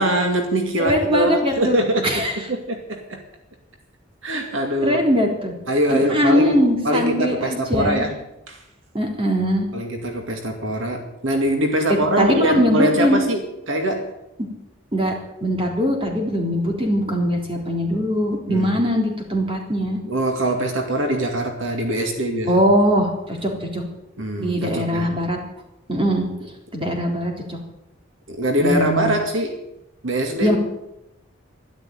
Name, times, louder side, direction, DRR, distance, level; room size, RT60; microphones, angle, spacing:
voice 1, 0.0-3.2 4.2-5.0 5.7-8.2 8.5-8.6 9.7-13.4 13.7-14.1 18.5-18.8 20.1-22.6 24.2-25.1 28.3-29.6 30.0-30.5, right 1 dB, 75° right, 4 dB, 2.3 m, -23 dB
voice 2, 0.8-1.8 2.0-2.4 4.8-5.5 5.9-8.1 8.9-9.7 12.2-13.2 14.9-15.1 15.4-20.0 22.5-23.8 24.4-25.4 25.9-26.3 26.7-27.6 28.6-29.1 30.4-30.6, equal, 25° right, 1 dB, 3.8 m, -21 dB
12.5 x 12.0 x 9.3 m, 0.88 s
head